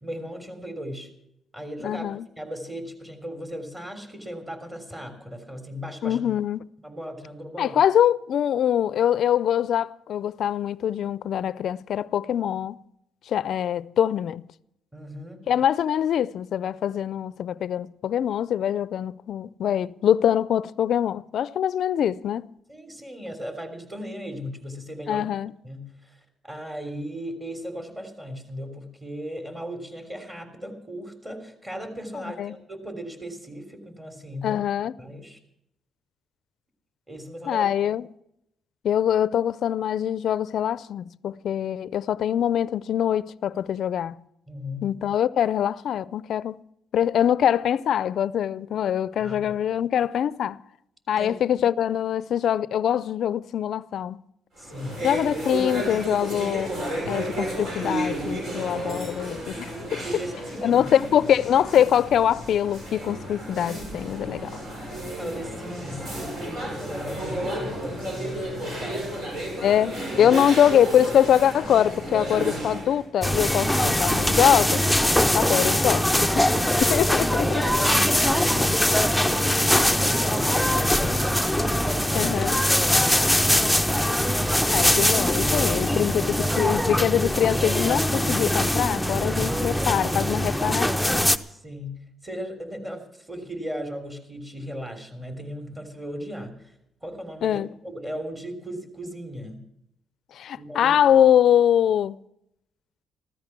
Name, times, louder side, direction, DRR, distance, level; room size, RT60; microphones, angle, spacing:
voice 1, 0.0-1.1 1.5-2.0 2.4-6.2 6.8-7.8 14.9-15.4 22.7-25.3 25.6-34.6 35.0-35.4 37.1-37.7 44.5-44.9 49.2-49.5 51.2-51.4 54.6-55.1 59.7-60.9 65.2-69.1 70.1-70.4 72.2-72.3 75.1-75.6 77.4-82.4 82.7-84.1 89.3-89.5 91.5-96.7 97.0-99.6 100.6-101.0, equal, 20° right, 3.4 m, -37 dB
voice 2, 1.8-2.3 6.0-6.7 7.6-12.8 13.3-14.4 15.5-22.5 25.1-25.5 32.2-32.6 34.4-34.9 37.5-38.1 38.8-44.2 44.8-46.6 46.9-50.6 51.1-54.2 55.0-56.7 57.1-59.7 60.6-64.6 69.6-74.9 75.3-76.4 76.8-77.6 82.1-82.6 84.7-91.3 97.4-97.7 100.3-102.2, left 10 dB, 70° left, 0.4 m, -23 dB
sound 1, 54.6-73.0, equal, 65° right, 6.2 m, -32 dB
sound 2, 73.2-91.4, left 1 dB, ahead, 0.7 m, -22 dB
15.0 x 13.5 x 6.0 m
cardioid pair, 90°, 0 cm